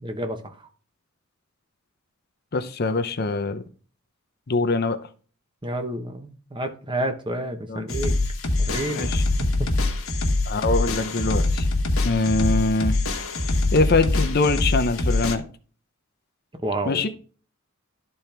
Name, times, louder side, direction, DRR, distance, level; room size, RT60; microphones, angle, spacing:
voice 1, 0.0-0.5 5.6-8.1 8.6-9.1 9.4-9.7 16.6-17.0, right 1 dB, 25° right, 0.9 m, -29 dB
voice 2, 2.5-3.6 4.5-5.0 7.7-7.9 8.9-9.2 10.5-11.7 12.0-13.0 13.7-15.4 16.8-17.1, left 3 dB, 50° left, 0.7 m, -23 dB
sound 1, 7.9-15.4, left 2 dB, 85° left, 1.3 m, -24 dB
12.0 x 4.4 x 3.3 m
head